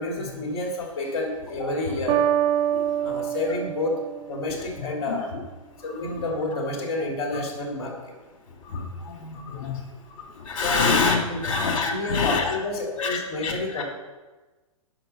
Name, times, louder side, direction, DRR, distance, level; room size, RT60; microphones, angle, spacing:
voice 1, 0.0-2.2 3.0-4.0 4.3-5.3 5.8-7.9 10.6-10.8 11.3-11.5 11.9-13.8, left 2 dB, 45° left, 0 dB, 3.2 m, -29 dB
sound 1, 2.1-4.9, right 10 dB, 30° right, 1.6 m, -26 dB
voice 2, 8.7-9.8 10.4-12.6 13.0-13.8, left 4 dB, 65° left, 1 dB, 2.5 m, -26 dB
11.0 x 5.7 x 5.6 m, 1.2 s
figure-of-eight pair, 115°, 18 cm